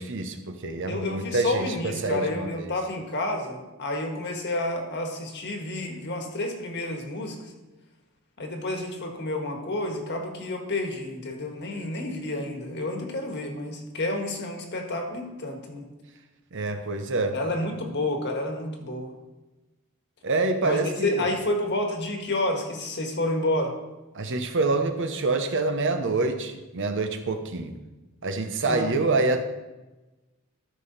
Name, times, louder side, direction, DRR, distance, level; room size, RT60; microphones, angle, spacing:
voice 1, 0.0-2.7 16.5-17.4 20.2-21.3 24.1-27.7 28.2-29.4, right 3 dB, 55° right, 7 dB, 0.9 m, -26 dB
voice 2, 0.9-7.5 8.4-15.9 17.3-19.1 20.6-23.8 28.7-28.9, left 1 dB, 50° left, 3 dB, 1.5 m, -30 dB
13.0 x 6.0 x 4.0 m, 1.1 s
head